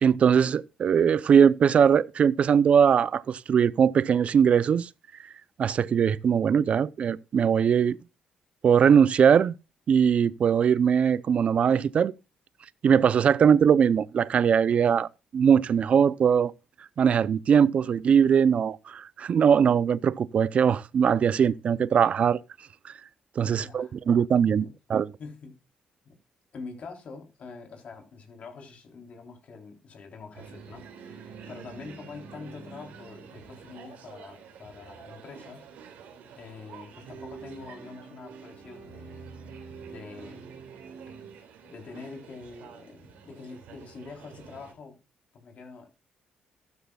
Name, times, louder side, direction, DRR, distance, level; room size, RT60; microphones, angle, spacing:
voice 1, 0.0-4.9 5.6-8.0 8.6-9.5 9.9-12.1 12.8-15.1 15.3-16.5 17.0-22.4 23.4-25.1, right 7 dB, 55° right, 0.6 m, -21 dB
voice 2, 23.4-23.9 24.4-24.7 25.2-25.6 26.1-26.2 26.5-35.7 36.3-40.6 41.6-45.0 45.3-45.9, left 4 dB, 55° left, 3.6 m, -45 dB
sound 1, 30.3-44.7, right 6 dB, 85° right, 3.6 m, -47 dB
14.5 x 12.5 x 2.4 m
cardioid pair, 90°, 3 cm